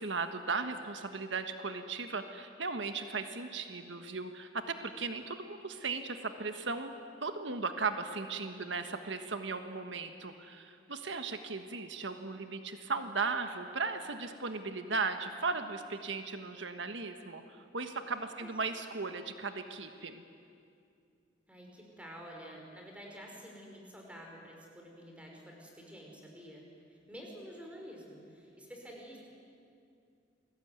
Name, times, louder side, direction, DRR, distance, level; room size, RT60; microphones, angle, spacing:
voice 1, 0.0-6.9 7.2-20.2, right 4 dB, 80° right, 7 dB, 1.4 m, -37 dB
voice 2, 21.5-26.6 26.9-29.2, equal, 5° right, 0 dB, 5.4 m, -49 dB
29.0 x 21.0 x 9.6 m, 2.4 s
head